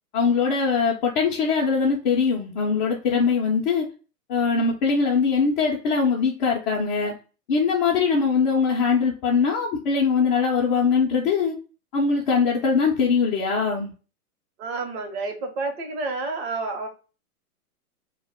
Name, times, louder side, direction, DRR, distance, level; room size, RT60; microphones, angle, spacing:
voice 1, 0.1-3.9 4.3-7.1 7.5-11.6 11.9-13.9, left 5 dB, 35° left, -3 dB, 0.6 m, -22 dB
voice 2, 14.6-16.9, right 3 dB, 45° right, 4 dB, 0.9 m, -29 dB
2.3 x 2.0 x 3.4 m, 0.34 s
hypercardioid pair, 120°, 46 cm